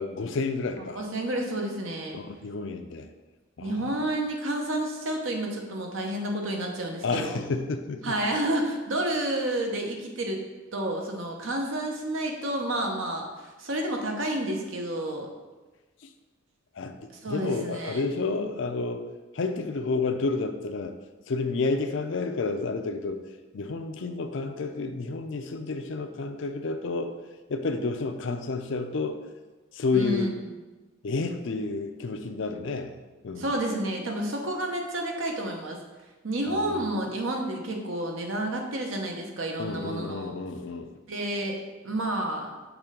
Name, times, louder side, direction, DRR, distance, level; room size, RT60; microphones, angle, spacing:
voice 1, 0.0-1.0 2.1-3.1 3.6-4.1 7.0-8.2 16.0-16.1 16.8-19.0 19.3-21.0 21.3-23.3 23.5-27.1 27.5-29.2 29.7-30.3 31.0-33.0 33.2-33.5 36.5-36.8 39.6-40.9, left 3 dB, 65° left, 7 dB, 0.5 m, -30 dB
voice 2, 0.9-2.2 3.6-7.4 8.0-10.4 10.7-15.3 17.1-18.0 29.9-30.4 33.4-35.8 36.2-40.3 41.1-41.6 41.8-42.5, right 1 dB, 70° right, 2 dB, 0.9 m, -30 dB
6.0 x 3.2 x 5.0 m, 1.2 s
head